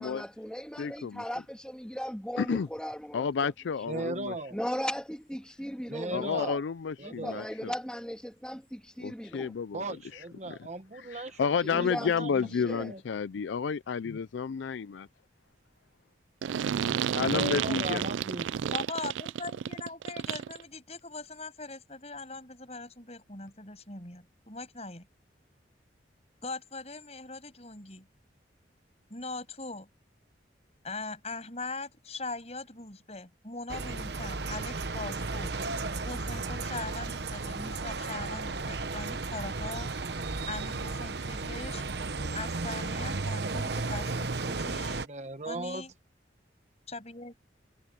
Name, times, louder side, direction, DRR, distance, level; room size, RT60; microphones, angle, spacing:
voice 1, 0.0-3.5 3.9-4.1 4.5-6.6 7.0-9.6 11.7-12.9, equal, 5° left, 2.6 m, -38 dB
voice 2, 0.8-1.2 2.4-2.7 3.1-4.3 6.1-7.7 9.0-9.8 10.1-10.6 10.9-15.1 17.1-18.0, left 6 dB, 75° left, 0.4 m, -31 dB
voice 3, 3.9-4.6 5.9-6.5 7.0-7.5 9.7-12.3 12.8-13.0 17.3-18.8 45.0-45.8, right 2 dB, 35° right, 1.0 m, -37 dB
sound 1, 16.4-20.6, right 8 dB, 85° right, 0.3 m, -31 dB
voice 4, 18.7-25.1 26.4-28.1 29.1-29.9 30.8-35.6 36.1-39.9 40.5-41.8 42.3-45.1 45.4-45.9 46.9-47.4, left 3 dB, 35° left, 7.8 m, -41 dB
sound 2, 33.7-45.1, right 3 dB, 60° right, 1.0 m, -34 dB
head